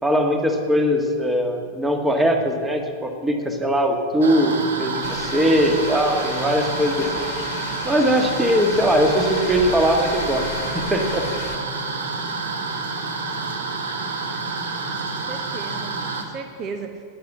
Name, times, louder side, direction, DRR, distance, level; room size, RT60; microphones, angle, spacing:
voice 1, 0.0-7.3 7.8-11.3, equal, 10° right, 4 dB, 1.7 m, -20 dB
sound 1, 4.2-16.2, right 3 dB, 65° right, 1.6 m, -28 dB
sound 2, 5.0-11.6, left 8 dB, 45° left, 1.4 m, -36 dB
voice 2, 15.0-17.0, right 5 dB, 35° right, 7 dB, 0.9 m, -36 dB
11.5 x 9.9 x 8.1 m, 2.3 s
figure-of-eight pair, 90°, 0 cm